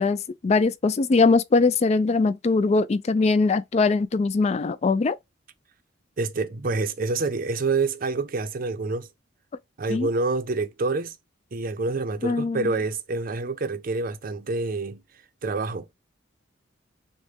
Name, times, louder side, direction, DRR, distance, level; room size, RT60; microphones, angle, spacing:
voice 1, 0.0-5.2 9.9-10.1 12.2-12.7, left 3 dB, 35° left, 0.3 m, -21 dB
voice 2, 6.2-9.1 9.8-11.2 11.5-15.0 15.4-15.9, right 3 dB, 45° right, 0.5 m, -27 dB
6.4 x 2.1 x 3.3 m
head